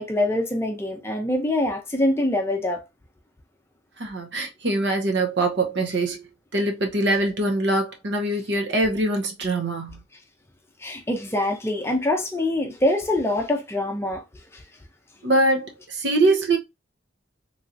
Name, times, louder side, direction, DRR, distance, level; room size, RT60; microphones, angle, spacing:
voice 1, 0.0-2.8 10.8-14.2 14.5-14.6, left 1 dB, 15° left, 0.5 m, -24 dB
voice 2, 4.0-6.2 6.5-10.0 15.2-16.6, right 2 dB, 65° right, 0.7 m, -23 dB
3.1 x 2.8 x 2.5 m
head